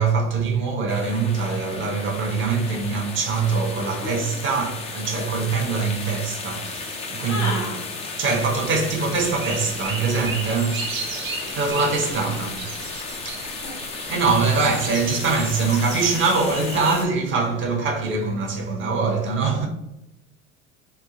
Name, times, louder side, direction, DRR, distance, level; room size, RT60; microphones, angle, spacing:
voice 1, 0.0-7.6 8.2-10.9 11.5-12.6 13.2-13.6 14.1-19.7, right 4 dB, 30° right, 0.6 m, -23 dB
sound 1, 0.9-17.1, left 4 dB, 15° left, 0.3 m, -34 dB
voice 2, 7.2-7.8 12.1-12.6 13.4-13.7, left 2 dB, 75° left, 1.1 m, -33 dB
sound 2, 9.1-16.9, right 4 dB, 75° right, 0.6 m, -35 dB
3.0 x 2.2 x 2.4 m
figure-of-eight pair, 75°, 41 cm